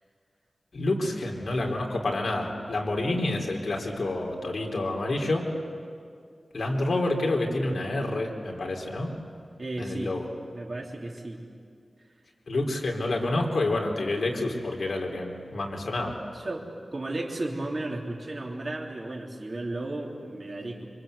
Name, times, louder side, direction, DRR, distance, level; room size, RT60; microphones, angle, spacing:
voice 1, 0.7-5.4 6.5-9.1 9.8-10.3 12.5-16.2, left 2 dB, 85° left, 1 dB, 3.6 m, -28 dB
voice 2, 9.6-10.1 10.5-11.4 16.3-20.8, right 2 dB, 50° right, -1 dB, 3.3 m, -34 dB
27.0 x 25.0 x 8.1 m, 2.3 s
wide cardioid pair, 90°, 0 cm